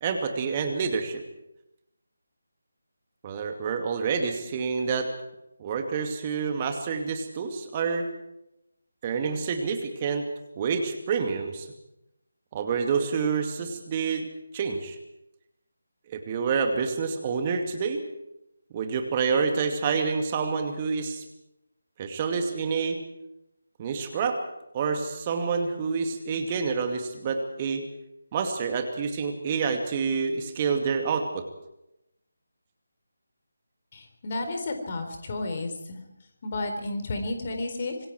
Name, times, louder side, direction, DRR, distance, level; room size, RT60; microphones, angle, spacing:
voice 1, 0.0-1.2 3.2-5.1 5.6-8.1 9.0-10.3 10.6-11.7 12.5-14.3 14.5-15.0 16.1-18.0 18.7-21.2 22.0-23.0 23.8-24.4 24.7-27.8 28.3-31.4, right 5 dB, 25° right, 5 dB, 2.4 m, -28 dB
voice 2, 33.9-35.7 36.4-37.9, left 2 dB, 35° left, 5 dB, 4.1 m, -31 dB
26.0 x 21.5 x 4.8 m, 0.86 s
figure-of-eight pair, 155°, 0 cm